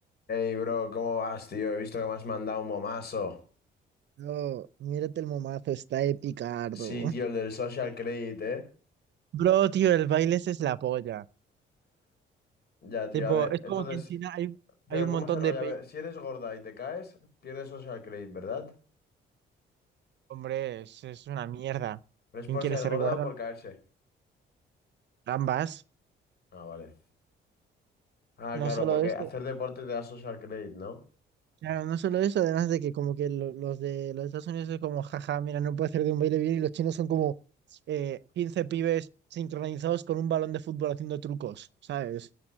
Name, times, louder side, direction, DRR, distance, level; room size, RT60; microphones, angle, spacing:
voice 1, 0.3-3.4 6.7-8.6 12.8-14.0 14.9-17.1 17.4-18.7 22.3-23.7 26.5-26.9 28.4-31.0, left 5 dB, 55° left, 4.5 m, -34 dB
voice 2, 4.2-7.1 9.3-11.2 13.1-14.6 14.9-15.7 20.3-22.0 22.5-23.3 25.3-25.8 28.5-29.3 31.6-37.3 37.9-42.3, right 11 dB, 65° right, 0.6 m, -30 dB
10.5 x 8.0 x 8.7 m
cardioid pair, 90°, 20 cm